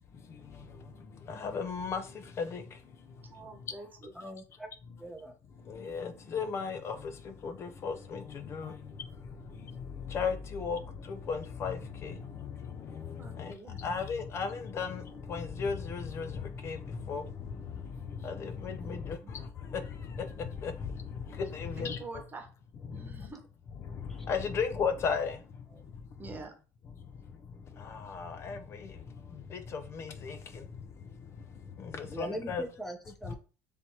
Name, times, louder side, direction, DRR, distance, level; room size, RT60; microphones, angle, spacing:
voice 1, 0.1-3.7 5.6-22.0 22.9-23.3 23.8-26.2 27.0-32.6 33.3-33.4, left 5 dB, 40° left, 0.6 m, -37 dB
voice 2, 3.2-4.1 13.2-13.8 18.8-19.3 21.8-22.5 22.9-23.4 25.7-25.8 26.2-26.5 32.0-32.3, right 3 dB, 25° right, 1.1 m, -47 dB
voice 3, 4.2-4.7 5.0-5.3 32.1-33.4, right 1 dB, 5° left, 0.8 m, -40 dB
3.4 x 2.8 x 4.4 m
supercardioid pair, 105°, 7 cm